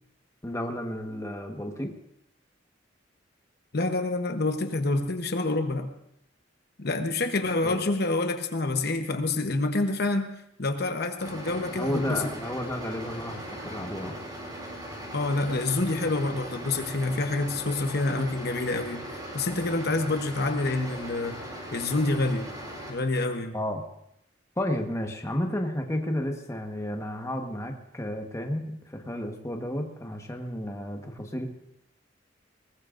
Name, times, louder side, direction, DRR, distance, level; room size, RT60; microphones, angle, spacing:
voice 1, 0.4-1.9 7.6-7.8 11.8-14.2 23.5-23.8 24.6-31.5, left 1 dB, 15° left, 3 dB, 1.3 m, -32 dB
voice 2, 3.7-5.9 6.8-10.3 10.6-12.3 15.1-21.4 21.7-22.5 22.9-23.6, left 2 dB, 55° left, 6 dB, 1.0 m, -27 dB
sound 1, 11.2-22.9, right 1 dB, 20° right, 5.3 m, -39 dB
22.0 x 19.0 x 2.6 m, 0.78 s
head